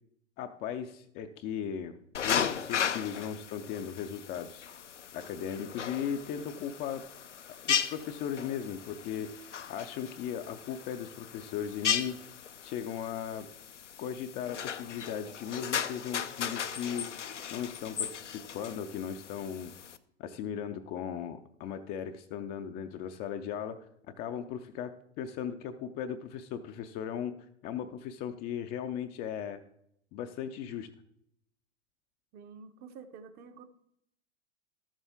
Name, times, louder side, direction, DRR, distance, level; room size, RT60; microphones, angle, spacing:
voice 1, 0.4-4.7 5.1-7.0 7.7-9.4 9.7-12.2 12.6-13.5 14.0-17.1 17.5-19.7 20.2-23.8 24.2-27.3 27.6-29.6 30.1-30.9, left 8 dB, 25° left, 7 dB, 0.5 m, -37 dB
sound 1, 2.1-20.0, left 8 dB, 80° left, 0.6 m, -36 dB
voice 2, 32.3-33.6, right 5 dB, 25° right, 8 dB, 0.8 m, -49 dB
12.5 x 7.3 x 3.6 m, 0.73 s
figure-of-eight pair, 95°, 36 cm